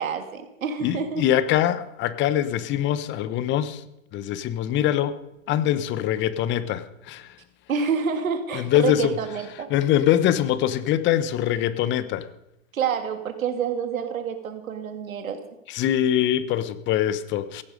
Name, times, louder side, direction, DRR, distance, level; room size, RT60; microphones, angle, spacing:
voice 1, 0.0-1.3 7.7-9.7 12.7-15.4, right 6 dB, 80° right, 7 dB, 2.8 m, -28 dB
voice 2, 0.8-3.8 4.1-5.2 5.5-7.3 8.5-9.1 9.7-12.2 15.7-17.6, left 11 dB, 30° left, 15 dB, 0.9 m, -23 dB
16.5 x 15.0 x 5.2 m, 0.87 s
hypercardioid pair, 120°, 41 cm